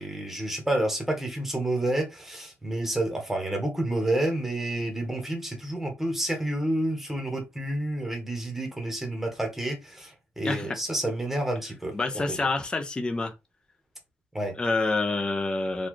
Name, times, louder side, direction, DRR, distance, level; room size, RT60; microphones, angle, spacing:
voice 1, 0.0-12.0 12.4-12.5 14.3-14.5, right 1 dB, 5° right, 1.1 m, -29 dB
voice 2, 10.4-10.8 11.9-13.3 14.6-15.9, left 3 dB, 20° left, 0.6 m, -27 dB
4.0 x 2.3 x 3.1 m
cardioid pair, 125°, 4 cm